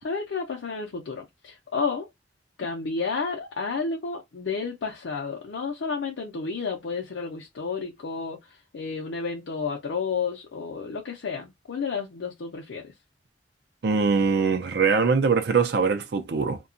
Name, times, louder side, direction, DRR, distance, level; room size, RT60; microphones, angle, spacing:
voice 1, 0.0-2.1 2.6-12.9, left 5 dB, 90° left, 0.5 m, -31 dB
voice 2, 13.8-16.6, right 5 dB, 60° right, 0.5 m, -22 dB
2.7 x 2.2 x 2.5 m
head